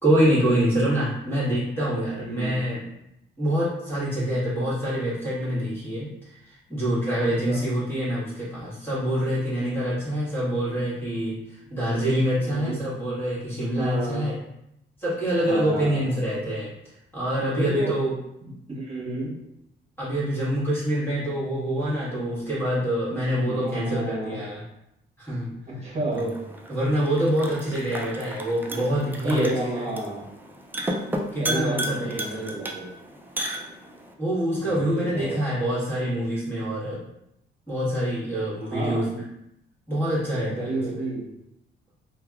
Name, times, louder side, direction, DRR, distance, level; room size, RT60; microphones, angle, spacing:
voice 1, 0.0-2.8 3.4-6.1 6.7-11.4 11.7-14.3 15.0-16.7 17.1-18.1 20.0-24.6 25.2-25.5 26.1-26.3 26.7-29.5 31.3-32.4 34.2-37.0 37.7-39.1 39.9-40.8, equal, 10° left, -9 dB, 1.4 m, -25 dB
voice 2, 2.1-2.7 7.5-7.6 12.4-12.8 13.7-14.4 15.4-16.2 17.3-17.9 18.4-19.3 23.4-24.4 25.7-26.4 28.9-30.2 31.4-32.9 34.6-35.4 38.6-39.0 40.5-41.2, right 1 dB, 30° right, -5 dB, 1.3 m, -31 dB
sound 1, 26.1-34.1, right 1 dB, 10° right, 0.4 m, -34 dB
3.3 x 2.2 x 2.3 m, 0.82 s
cardioid pair, 90°, 20 cm